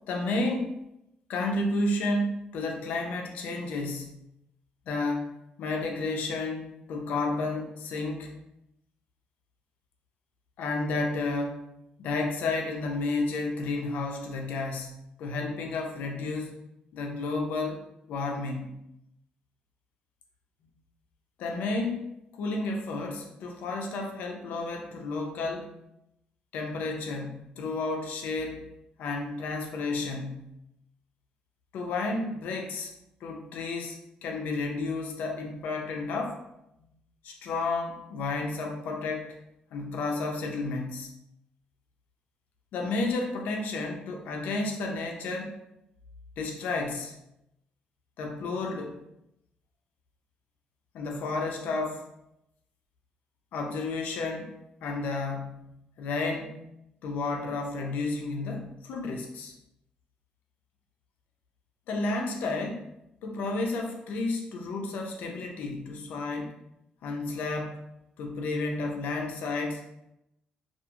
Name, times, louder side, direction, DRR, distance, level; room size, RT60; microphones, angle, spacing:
voice 1, 0.1-0.8 1.3-4.2 4.9-5.3 5.6-8.4 10.6-11.6 12.0-16.6 16.9-17.8 18.1-18.7 21.4-25.7 26.5-28.6 29.0-30.5 31.7-32.9 33.2-36.4 37.2-39.4 39.7-41.1 42.7-45.5 46.4-47.1 48.2-48.9 50.9-52.0 53.5-54.5 54.8-55.7 56.0-56.6 57.0-59.5 61.9-62.8 63.2-66.5 67.0-67.8 68.2-69.8, left 3 dB, 80° left, 2 dB, 0.5 m, -31 dB
2.4 x 2.4 x 2.8 m, 0.83 s
cardioid pair, 135°, 3 cm